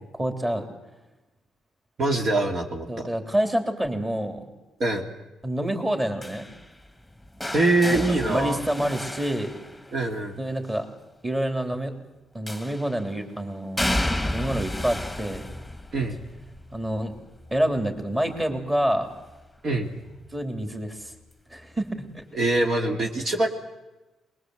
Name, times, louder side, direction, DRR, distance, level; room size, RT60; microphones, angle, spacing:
voice 1, 0.1-0.7 2.9-4.5 5.4-6.5 7.9-9.5 10.4-10.9 11.2-11.9 12.3-14.0 14.3-15.5 16.7-17.1 17.5-19.1 20.3-21.1 21.5-21.9 22.1-22.3, right 1 dB, 15° right, 5 dB, 3.3 m, -27 dB
voice 2, 2.0-3.1 4.8-5.1 7.5-8.6 9.9-10.4 15.9-16.2 19.6-19.9 22.3-23.5, right 2 dB, 50° right, 2 dB, 2.4 m, -24 dB
sound 1, 6.2-10.3 12.5-13.1 13.8-19.6 19.9-20.3 21.6-21.7, left 1 dB, ahead, 1.9 m, -33 dB
22.5 x 21.0 x 7.9 m, 1.1 s
cardioid pair, 90°, 0 cm